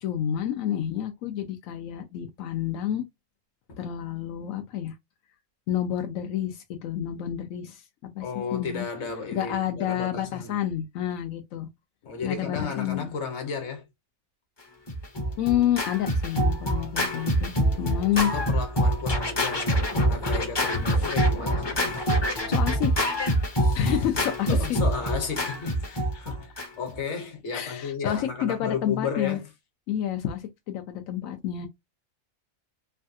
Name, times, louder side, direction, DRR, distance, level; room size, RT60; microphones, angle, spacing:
voice 1, 0.0-3.0 3.8-4.9 5.7-8.2 8.5-8.8 9.3-11.7 12.2-13.1 15.4-18.3 22.5-22.9 23.7-24.5 27.5-29.4 29.9-31.7, left 10 dB, 90° left, 1.0 m, -29 dB
voice 2, 8.2-10.6 12.0-13.9 17.7-22.1 24.5-29.5, left 5 dB, 60° left, 1.3 m, -34 dB
Scratching (performance technique), 14.9-27.0, equal, 30° left, 0.5 m, -25 dB
3.2 x 2.3 x 2.6 m
omnidirectional pair, 1.4 m